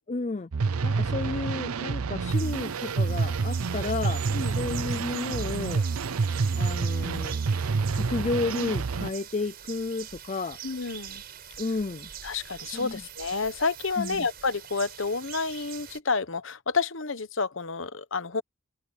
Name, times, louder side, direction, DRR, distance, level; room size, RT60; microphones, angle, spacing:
voice 1, 0.1-0.5 0.8-5.8 6.6-7.4 7.9-10.6 11.6-12.1 12.7-13.0 14.0-14.3, left 3 dB, 30° left, 0.4 m, -32 dB
sound 1, 0.5-9.1, right 4 dB, 90° right, 0.6 m, -28 dB
sound 2, 2.3-16.0, right 9 dB, 45° right, 5.8 m, -43 dB
voice 2, 4.3-4.7 10.6-11.2 12.2-18.4, left 4 dB, 65° left, 1.0 m, -30 dB
head